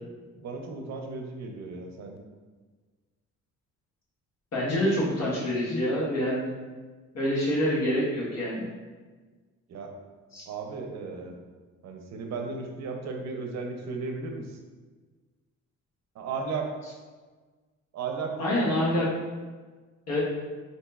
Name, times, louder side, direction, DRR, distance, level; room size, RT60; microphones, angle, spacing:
voice 1, 0.0-2.2 9.7-10.0 10.5-11.4 11.8-14.6 16.1-16.7 17.9-18.8, right 4 dB, 60° right, 3 dB, 0.6 m, -35 dB
voice 2, 4.5-6.5 7.1-8.7 10.3-10.4 18.4-19.1 20.1-20.2, equal, 60° left, -6 dB, 1.2 m, -26 dB
3.9 x 2.7 x 2.3 m, 1.4 s
cardioid pair, 90°, 30 cm